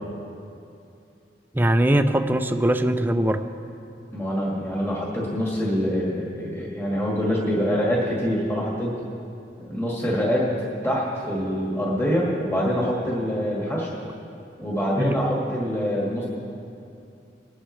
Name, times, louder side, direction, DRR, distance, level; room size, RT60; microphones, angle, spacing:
voice 1, 1.5-3.4 15.0-15.1, right 1 dB, 10° right, 8 dB, 0.4 m, -21 dB
voice 2, 4.1-8.9 9.6-10.5 10.8-13.9 14.6-16.3, equal, 15° left, -4 dB, 1.8 m, -25 dB
19.5 x 11.5 x 3.2 m, 2.6 s
head